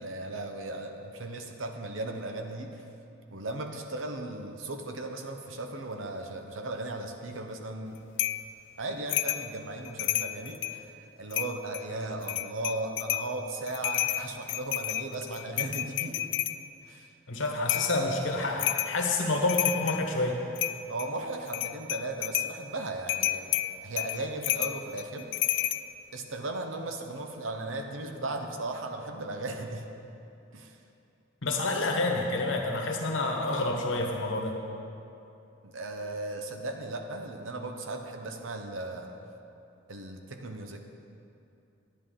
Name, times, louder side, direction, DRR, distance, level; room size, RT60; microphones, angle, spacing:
voice 1, 0.0-2.8 3.3-8.0 8.8-16.3 16.9-17.1 20.9-23.5 23.8-25.3 25.6-25.7 26.1-29.9 30.5-30.8 35.6-39.2 39.9-40.8, right 2 dB, 90° right, 5 dB, 0.9 m, -37 dB
sound 1, 8.2-8.5 9.1-9.5 9.8-10.8 11.3-11.8 12.2-13.3 13.7-16.6 17.7-18.0 18.6-19.0 19.3-20.1 20.6-21.1 21.5-22.5 23.1-25.8, left 15 dB, 65° left, 0.3 m, -30 dB
voice 2, 17.3-20.4 31.4-34.6, left 2 dB, 80° left, 2 dB, 1.2 m, -28 dB
10.5 x 10.0 x 3.8 m, 2.7 s
head